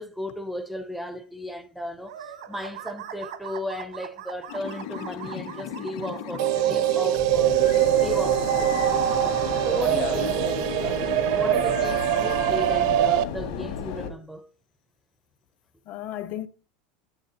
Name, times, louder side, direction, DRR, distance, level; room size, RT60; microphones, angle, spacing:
voice 1, 0.0-8.7 9.6-14.5, equal, ahead, 0.4 m, -35 dB
sound 1, 2.1-6.8, right 10 dB, 80° right, 1.1 m, -41 dB
sound 2, 4.5-14.1, left 8 dB, 70° left, 2.0 m, -34 dB
sound 3, 6.4-13.2, right 12 dB, 60° right, 0.6 m, -23 dB
voice 2, 9.9-10.3 15.9-16.5, left 12 dB, 40° left, 0.7 m, -34 dB
9.0 x 8.8 x 2.7 m
supercardioid pair, 160°, 4 cm